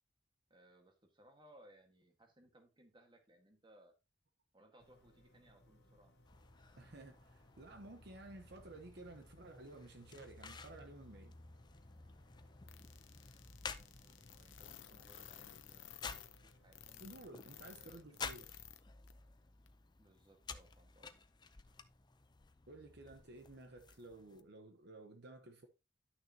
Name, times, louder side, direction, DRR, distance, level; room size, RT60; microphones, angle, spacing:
voice 1, 0.5-3.9 4.5-6.1 13.8-17.1 17.8-18.3 20.0-21.2, right 1 dB, 25° right, 1.6 m, -65 dB
sound 1, 4.8-18.2, left 1 dB, 60° left, 1.6 m, -67 dB
sound 2, 6.2-24.4, left 5 dB, 25° left, 0.5 m, -53 dB
voice 2, 6.8-11.4 17.0-18.7 22.7-25.7, right 2 dB, 60° right, 1.0 m, -54 dB
sound 3, 12.7-18.8 19.1-19.2 19.7-19.8, left 11 dB, 80° left, 0.8 m, -55 dB
11.0 x 6.3 x 2.8 m
head